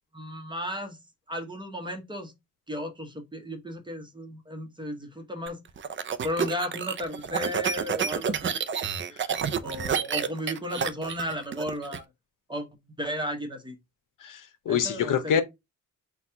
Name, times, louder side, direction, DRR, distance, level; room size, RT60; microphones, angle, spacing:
voice 1, 0.1-1.0 1.3-2.3 2.7-5.6 6.2-8.5 9.0-9.2 9.6-12.0 12.5-12.7 13.0-13.8 14.7-15.4, left 1 dB, 15° right, 0.9 m, -34 dB
sound 1, 5.5-12.0, right 7 dB, 40° right, 0.4 m, -29 dB
voice 2, 14.2-15.4, left 8 dB, 70° left, 0.7 m, -26 dB
4.2 x 2.3 x 4.3 m
wide cardioid pair, 115°, 32 cm